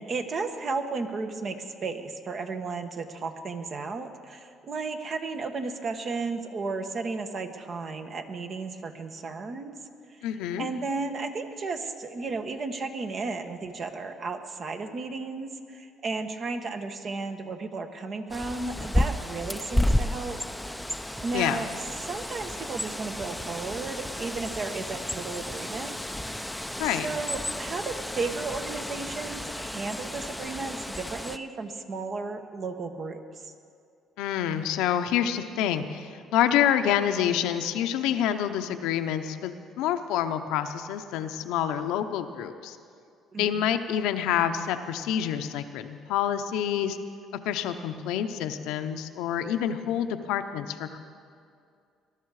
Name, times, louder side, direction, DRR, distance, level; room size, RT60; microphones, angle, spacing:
voice 1, 0.0-9.7 10.2-10.3 10.6-20.4 20.8-21.7 22.0-26.0 26.8-33.5 43.3-43.7, right 4 dB, 45° right, 7 dB, 1.2 m, -34 dB
voice 2, 10.2-10.7 21.3-21.6 26.8-27.1 34.2-42.8 43.4-47.0 47.4-51.0, left 10 dB, 90° left, 8 dB, 0.8 m, -27 dB
Bird, 18.3-31.4, left 1 dB, 5° left, 0.6 m, -32 dB
20.5 x 12.0 x 4.9 m, 2.3 s
cardioid pair, 100°, 0 cm